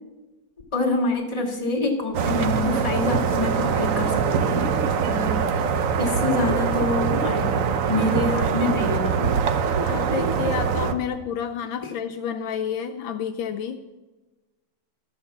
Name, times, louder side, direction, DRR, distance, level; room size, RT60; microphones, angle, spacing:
voice 1, 0.7-4.7 5.0-5.4 6.0-7.5 7.9-9.3 11.8-11.9, left 2 dB, 15° left, -2 dB, 1.6 m, -26 dB
sound 1, 2.1-10.9, right 6 dB, 70° right, 0.8 m, -23 dB
voice 2, 9.8-13.8, left 8 dB, 75° left, 7 dB, 1.3 m, -29 dB
12.5 x 6.4 x 7.2 m, 1.2 s
omnidirectional pair, 2.2 m